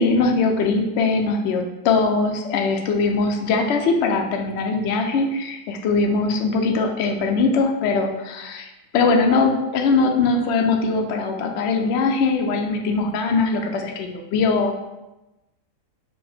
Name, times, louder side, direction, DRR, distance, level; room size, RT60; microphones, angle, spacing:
voice 1, 0.0-14.7, left 4 dB, 70° left, 3 dB, 0.6 m, -21 dB
5.4 x 2.1 x 4.2 m, 0.98 s
omnidirectional pair, 1.8 m